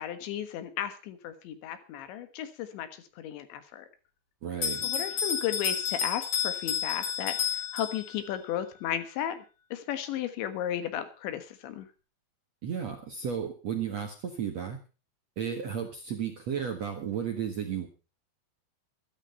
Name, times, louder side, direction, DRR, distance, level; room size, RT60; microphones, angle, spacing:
voice 1, 0.0-3.9 4.8-9.4 9.7-11.9, left 10 dB, 80° left, 10 dB, 3.7 m, -34 dB
voice 2, 4.4-4.9 12.6-14.8 15.4-17.9, right 8 dB, 55° right, 4 dB, 1.9 m, -33 dB
Bell, 4.6-8.3, left 7 dB, 45° left, 4.7 m, -31 dB
13.5 x 13.0 x 5.6 m, 0.34 s
omnidirectional pair, 5.2 m